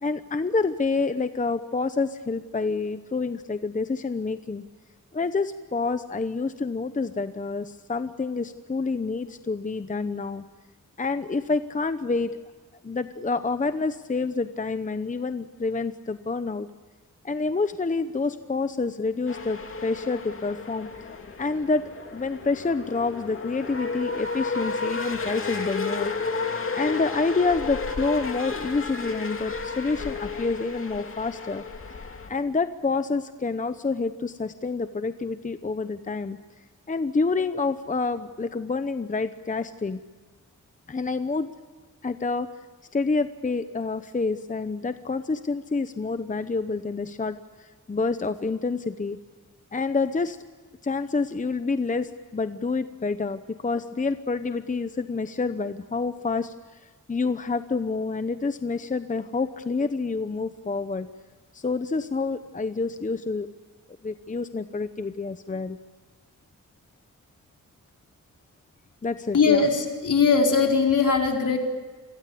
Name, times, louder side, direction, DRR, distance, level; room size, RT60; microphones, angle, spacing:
voice 1, 0.0-4.6 5.1-10.4 11.0-12.3 12.8-16.7 17.2-20.9 21.4-21.8 22.1-26.1 26.7-31.6 32.3-36.4 36.9-40.0 40.9-41.5 42.0-42.5 42.9-49.2 49.7-50.4 50.8-56.8 57.1-61.1 61.5-63.5 64.0-65.8 69.0-69.6, left 4 dB, 25° left, 10 dB, 0.8 m, -28 dB
sound 1, 19.3-32.3, left 4 dB, 40° left, 2.7 m, -32 dB
voice 2, 69.3-71.6, left 5 dB, 70° left, 2 dB, 4.5 m, -20 dB
29.0 x 22.5 x 8.5 m, 1.4 s
wide cardioid pair, 155°, 32 cm